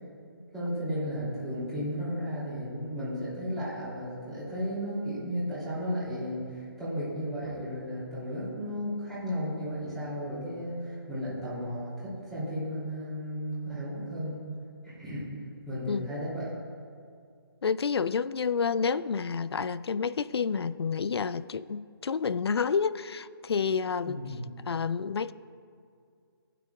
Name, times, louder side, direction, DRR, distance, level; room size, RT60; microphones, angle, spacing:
voice 1, 0.5-14.4 14.8-15.3 15.6-16.5 24.0-24.4, equal, 5° left, -11 dB, 2.8 m, -34 dB
voice 2, 17.6-24.2 24.7-25.3, left 5 dB, 80° left, 17 dB, 0.4 m, -29 dB
16.0 x 9.2 x 2.3 m, 2.3 s
hypercardioid pair, 160°, 13 cm